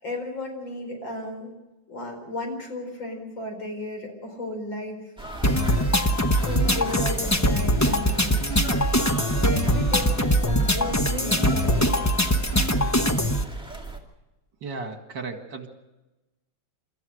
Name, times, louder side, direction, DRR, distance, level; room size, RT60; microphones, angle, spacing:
voice 1, 0.0-1.5 1.9-5.0 6.4-8.4 9.4-12.1, left 1 dB, 70° left, 3 dB, 5.3 m, -34 dB
sound 1, 5.2-14.0, right 2 dB, ahead, 2.3 m, -37 dB
sound 2, 5.4-13.4, equal, 25° left, 0.3 m, -22 dB
voice 2, 14.6-15.7, right 3 dB, 65° right, 5 dB, 2.6 m, -35 dB
29.5 x 14.0 x 6.5 m, 1.1 s
omnidirectional pair, 2.2 m